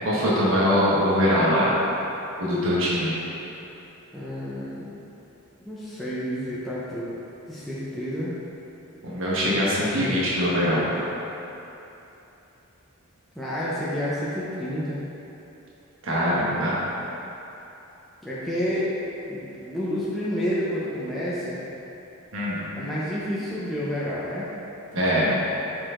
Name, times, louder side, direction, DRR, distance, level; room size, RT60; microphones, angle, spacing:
voice 1, 0.0-1.8 2.4-3.1 9.0-11.0 16.0-16.8 22.3-22.6 24.9-25.3, equal, 65° right, -7 dB, 1.3 m, -22 dB
voice 2, 4.1-4.9 5.7-7.1 7.5-8.3 13.3-15.0 18.2-19.0 19.3-21.6 22.7-24.5, equal, ahead, -10 dB, 0.7 m, -29 dB
6.7 x 4.6 x 3.8 m, 3.0 s
head